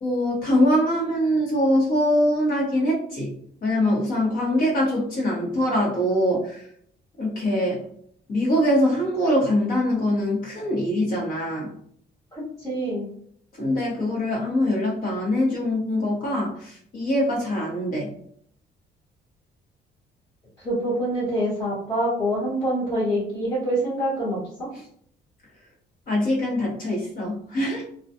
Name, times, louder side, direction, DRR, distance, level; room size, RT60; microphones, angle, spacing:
voice 1, 0.0-3.3 3.6-6.6 7.2-7.8 8.3-11.7 13.6-18.1 26.1-27.8, left 1 dB, 50° left, -2 dB, 1.0 m, -23 dB
voice 2, 12.3-13.1 20.6-24.7, right 1 dB, 20° left, -9 dB, 1.0 m, -26 dB
2.3 x 2.2 x 2.7 m, 0.62 s
cardioid pair, 155°, 19 cm